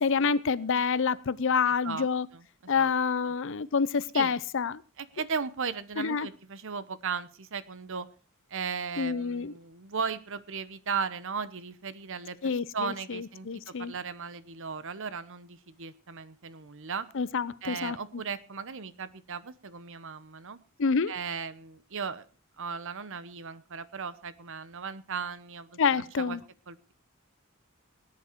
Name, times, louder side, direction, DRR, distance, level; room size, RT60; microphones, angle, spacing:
voice 1, 0.0-2.3 2.7-4.8 6.0-6.3 9.0-9.5 12.4-13.9 17.1-18.0 20.8-21.1 25.8-26.4, left 5 dB, 60° left, 0.6 m, -27 dB
voice 2, 1.7-2.1 2.3-2.4 2.8-2.9 3.2-3.3 4.1-4.3 5.0-8.1 8.5-17.1 17.6-20.6 21.1-22.2 22.6-26.4 26.7-26.9, right 5 dB, 60° right, 1.0 m, -36 dB
18.5 x 9.7 x 4.5 m
head